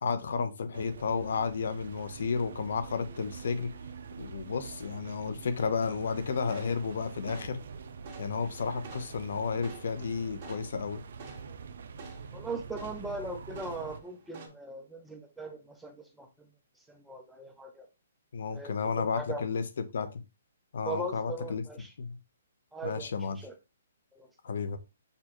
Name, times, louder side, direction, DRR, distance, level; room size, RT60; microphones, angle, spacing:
voice 1, 0.0-3.7 4.2-7.6 8.2-11.0 18.3-19.6 19.9-20.2 20.7-21.6 22.0-22.2 22.8-23.4 24.4-24.8, left 5 dB, 65° left, 0.8 m, -32 dB
sound 1, 0.7-14.0, right 5 dB, 65° right, 0.5 m, -45 dB
sound 2, 5.8-14.5, right 3 dB, 30° right, 1.5 m, -51 dB
voice 2, 12.3-16.5 16.9-17.9 18.5-19.4 20.8-21.9 22.7-23.5 24.1-24.3, right 2 dB, ahead, 0.6 m, -40 dB
6.7 x 2.3 x 3.0 m
hypercardioid pair, 165°, 0 cm